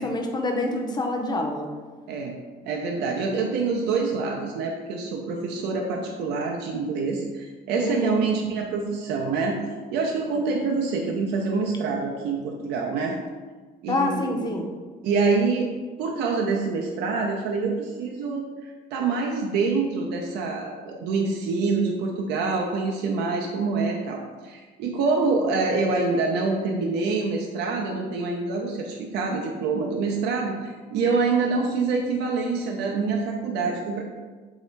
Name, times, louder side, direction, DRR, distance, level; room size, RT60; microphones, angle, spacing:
voice 1, 0.0-1.7 7.8-8.3 13.9-14.7, left 2 dB, 25° left, 2 dB, 0.6 m, -26 dB
voice 2, 2.6-9.6 9.9-13.2 13.8-14.5 15.0-15.7 16.0-34.0, right 4 dB, 80° right, 0 dB, 0.5 m, -26 dB
3.2 x 2.8 x 4.4 m, 1.4 s
cardioid pair, 110°, 17 cm